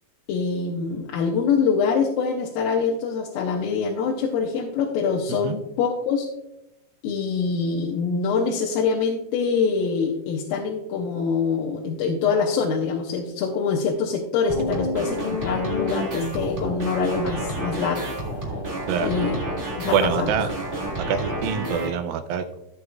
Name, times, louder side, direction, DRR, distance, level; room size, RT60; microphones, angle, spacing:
voice 1, 0.3-6.3 7.0-18.1 19.0-19.4 19.8-20.5, left 5 dB, 85° left, 0 dB, 2.6 m, -24 dB
sound 1, 14.5-21.9, equal, 25° right, 1.1 m, -29 dB
voice 2, 19.8-20.5 21.0-22.6, right 8 dB, 90° right, 8 dB, 2.4 m, -25 dB
14.0 x 8.1 x 2.4 m, 0.88 s
omnidirectional pair, 4.1 m